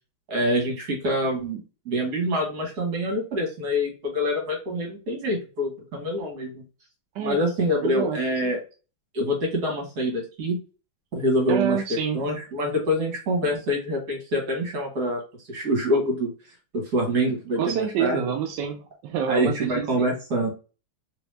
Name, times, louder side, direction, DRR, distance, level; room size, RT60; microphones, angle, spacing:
voice 1, 0.3-1.6 1.9-6.6 7.2-8.6 9.1-10.6 11.1-15.2 15.5-16.3 16.7-18.2 19.3-20.5, equal, 50° right, 0 dB, 1.8 m, -25 dB
voice 2, 7.8-8.2 11.5-12.2 17.6-20.1, right 7 dB, 75° right, 4 dB, 1.0 m, -27 dB
3.5 x 2.9 x 3.2 m, 0.33 s
omnidirectional pair, 2.4 m